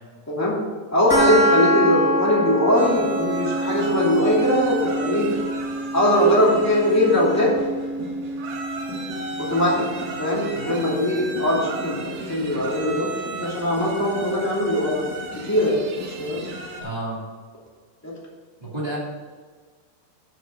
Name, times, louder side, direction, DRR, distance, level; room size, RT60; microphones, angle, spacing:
voice 1, 0.3-0.6 0.9-5.3 5.9-7.5 9.4-9.8 10.2-13.1 13.4-15.1 15.5-16.4 18.0-18.1, equal, 5° left, -5 dB, 1.4 m, -21 dB
sound 1, 1.1-12.1, equal, 35° left, 1.5 m, -27 dB
sound 2, 2.7-16.8, right 2 dB, 75° right, 3.2 m, -34 dB
voice 2, 16.8-17.2 18.6-19.0, right 1 dB, 10° right, -6 dB, 1.9 m, -30 dB
8.9 x 5.6 x 6.4 m, 1.5 s
omnidirectional pair, 4.6 m